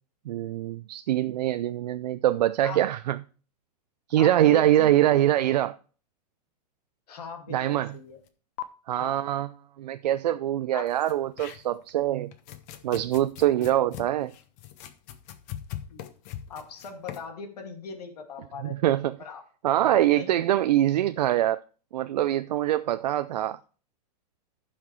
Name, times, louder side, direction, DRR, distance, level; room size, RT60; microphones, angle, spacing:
voice 1, 0.3-3.2 4.1-5.8 7.5-7.9 8.9-9.5 9.8-12.3 12.8-14.3 18.8-19.1 19.6-21.6 21.9-23.6, right 13 dB, 75° right, 0.5 m, -24 dB
voice 2, 4.2-4.9 7.1-8.2 9.0-9.2 10.7-10.9 15.9-16.0 16.5-18.8 19.2-19.4 19.9-20.4, left 5 dB, 70° left, 2.2 m, -40 dB
sound 1, 8.3-8.4 8.6-8.7 10.9-11.9 12.3-17.3, left 12 dB, 20° left, 0.5 m, -41 dB
15.0 x 5.8 x 3.1 m
supercardioid pair, 180°, 21 cm